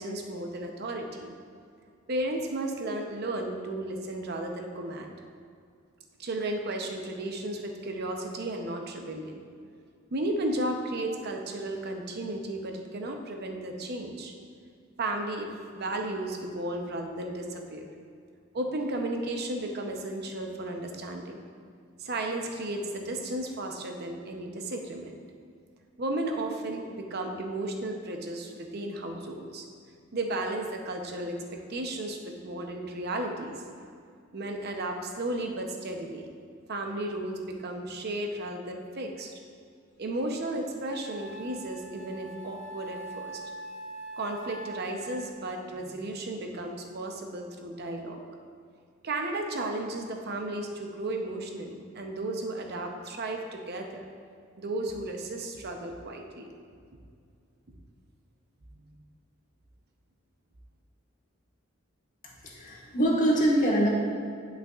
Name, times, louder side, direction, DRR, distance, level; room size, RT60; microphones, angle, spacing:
voice 1, 0.0-1.3 2.1-5.1 6.2-9.4 10.1-14.3 15.0-15.5 15.7-17.9 18.5-21.4 22.0-25.2 26.0-29.6 30.1-33.9 34.3-36.3 36.7-39.3 40.0-43.4 44.1-48.2 49.0-54.1 54.6-56.5, right 1 dB, 55° right, 3 dB, 0.7 m, -34 dB
Wind instrument woodwind instrument, 40.2-40.3 40.9-45.5, right 2 dB, 65° left, 0.6 m, -43 dB
voice 2, 62.4-63.9, right 1 dB, 40° left, -3 dB, 1.3 m, -24 dB
10.0 x 5.7 x 2.4 m, 2.3 s
head